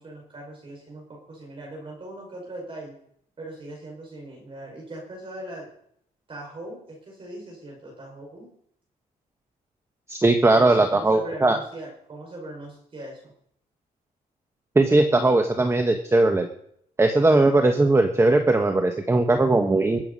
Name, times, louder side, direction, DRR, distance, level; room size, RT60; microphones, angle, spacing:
voice 1, 0.0-3.0 3.4-5.7 6.3-8.5 10.5-13.3, right 1 dB, 35° right, -2 dB, 5.3 m, -39 dB
voice 2, 10.1-11.6 14.7-16.5 17.0-20.0, right 2 dB, 15° right, 5 dB, 1.3 m, -19 dB
21.5 x 8.2 x 5.4 m, 0.68 s
cardioid pair, 105°, 15 cm